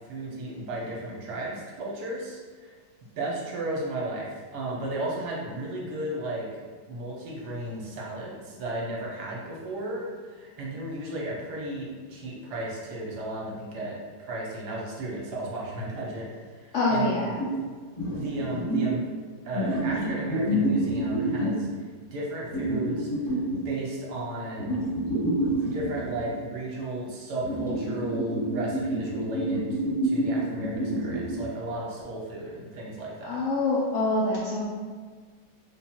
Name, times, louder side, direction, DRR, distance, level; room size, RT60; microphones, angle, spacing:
voice 1, 0.1-2.7 3.2-17.3 18.2-19.0 19.4-21.7 22.1-23.1 23.6-24.8 25.6-29.8 30.0-33.5, right 1 dB, 70° right, -3 dB, 1.4 m, -34 dB
voice 2, 16.7-17.4 33.2-34.6, left 2 dB, 70° left, -5 dB, 0.7 m, -25 dB
sound 1, 17.4-17.5 18.0-18.9 19.5-21.7 22.5-23.6 24.6-26.3 27.4-31.4, right 1 dB, 20° left, 1.0 m, -28 dB
3.6 x 2.5 x 4.3 m, 1.5 s
omnidirectional pair, 1.9 m